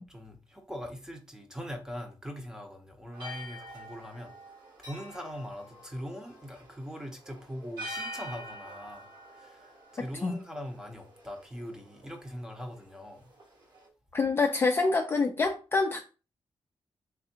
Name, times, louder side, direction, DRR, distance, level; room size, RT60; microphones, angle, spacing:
voice 1, 0.0-4.3 4.8-9.1 9.3-13.3, equal, 5° right, 0.6 m, -41 dB
sound 1, 3.1-13.9, equal, 50° right, 1.0 m, -46 dB
voice 2, 14.1-16.0, left 3 dB, 25° left, 0.3 m, -26 dB
3.5 x 3.4 x 2.7 m
wide cardioid pair, 165°, 9 cm